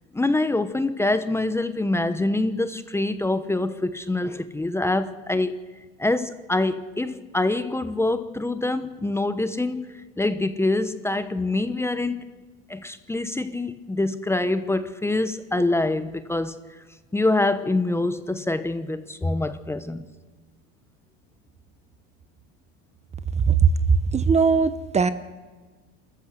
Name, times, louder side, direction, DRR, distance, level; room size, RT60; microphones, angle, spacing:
voice 1, 0.1-5.6 6.0-12.3 12.7-16.6 17.1-20.1, left 2 dB, 10° left, 1.0 m, -25 dB
voice 2, 24.1-25.1, right 5 dB, 20° right, 0.9 m, -20 dB
27.0 x 14.5 x 6.7 m
supercardioid pair, 110°, 30 cm